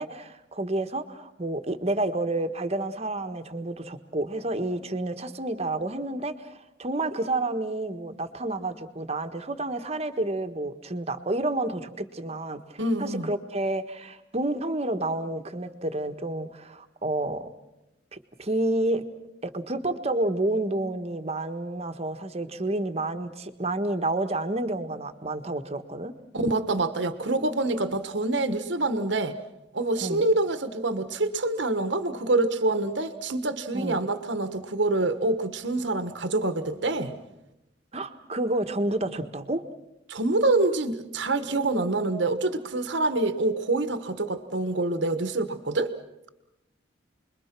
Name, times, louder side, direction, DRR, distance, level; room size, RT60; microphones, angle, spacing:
voice 1, 0.0-17.5 18.1-19.0 19.4-26.1 30.0-30.3 33.7-34.0 37.9-39.6, right 2 dB, 35° right, 8 dB, 1.6 m, -30 dB
voice 2, 12.8-13.3 26.3-29.4 29.7-37.1 40.1-45.9, right 2 dB, 75° right, 10 dB, 1.5 m, -26 dB
30.0 x 22.0 x 6.1 m, 0.91 s
head